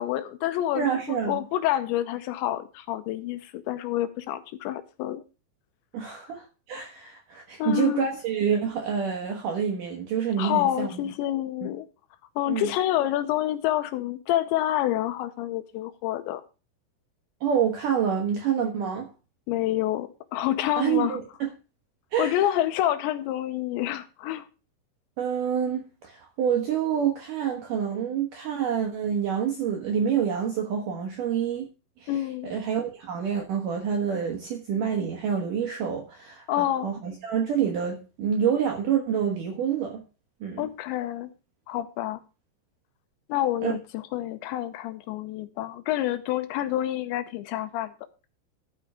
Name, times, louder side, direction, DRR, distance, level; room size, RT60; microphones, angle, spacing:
voice 1, 0.0-5.2 6.0-6.2 7.6-8.1 10.4-11.9 12.4-16.4 19.5-21.2 22.2-24.4 32.1-32.5 36.5-36.9 40.6-41.3 41.7-42.2 43.3-47.9, left 13 dB, 80° left, 2.9 m, -28 dB
voice 2, 0.8-1.4 5.9-10.9 11.6-11.7 12.5-12.7 17.4-19.1 20.8-21.2 22.1-22.4 25.2-31.7 32.0-32.1 32.4-40.0 40.4-40.7 43.6-43.7, right 8 dB, 70° right, 2.0 m, -27 dB
12.5 x 6.0 x 4.8 m
omnidirectional pair, 5.4 m